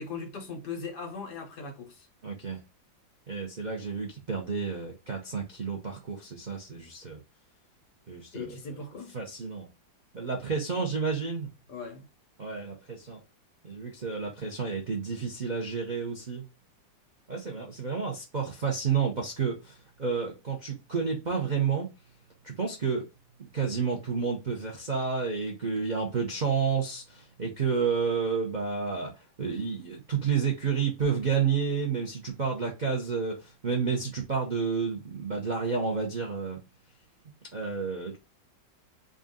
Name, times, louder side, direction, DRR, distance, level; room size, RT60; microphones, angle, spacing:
voice 1, 0.0-2.1 8.3-9.2 11.7-12.1, left 4 dB, 60° left, 1.6 m, -39 dB
voice 2, 2.2-2.6 3.3-7.2 8.1-8.5 9.1-9.7 10.1-11.5 12.4-13.2 13.6-16.4 17.3-21.9 22.4-23.1 23.4-36.6 37.5-38.2, right 5 dB, 80° right, 0.4 m, -30 dB
3.7 x 2.6 x 3.7 m
omnidirectional pair, 2.1 m